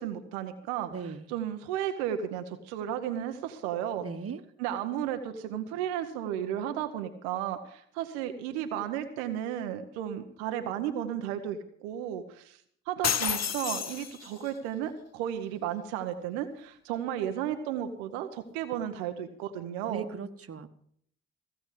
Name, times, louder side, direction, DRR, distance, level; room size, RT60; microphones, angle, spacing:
voice 1, 0.0-4.0 4.6-12.6 12.9-20.1, right 10 dB, 90° right, 8 dB, 0.8 m, -34 dB
voice 2, 0.9-1.3 4.0-4.4 19.9-20.7, right 5 dB, 45° right, 10 dB, 1.4 m, -38 dB
sound 1, 13.0-14.5, left 8 dB, 50° left, 1.2 m, -30 dB
16.0 x 7.0 x 8.2 m, 0.65 s
hypercardioid pair, 40°, 33 cm